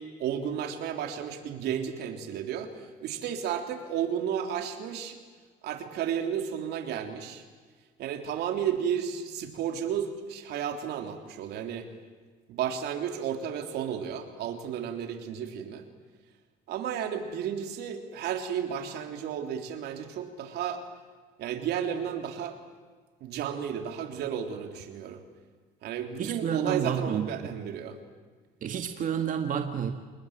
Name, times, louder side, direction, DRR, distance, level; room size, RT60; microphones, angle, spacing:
voice 1, 0.0-5.2 5.6-7.4 8.0-11.9 12.5-15.9 16.7-20.8 21.4-22.6 23.2-25.2 25.8-28.0, right 8 dB, 80° right, 6 dB, 3.5 m, -33 dB
voice 2, 26.2-27.6 28.6-29.9, right 8 dB, 50° right, 6 dB, 1.9 m, -30 dB
29.5 x 21.0 x 9.0 m, 1.5 s
cardioid pair, 110°, 17 cm